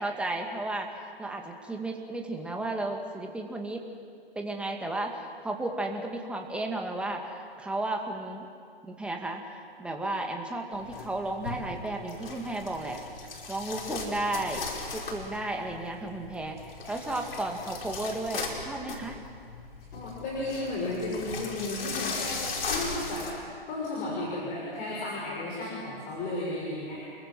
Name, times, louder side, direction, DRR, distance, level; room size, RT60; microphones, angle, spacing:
voice 1, 0.0-3.8 4.3-5.2 5.4-8.5 8.8-13.0 13.5-14.6 14.9-19.2, right 2 dB, 5° right, 2 dB, 2.2 m, -33 dB
sound 1, 10.7-23.3, left 4 dB, 65° left, 5.2 m, -38 dB
voice 2, 19.9-23.3 23.7-27.1, left 2 dB, 25° left, -4 dB, 6.5 m, -34 dB
29.0 x 22.5 x 7.8 m, 2.2 s
hypercardioid pair, 135°, 30 cm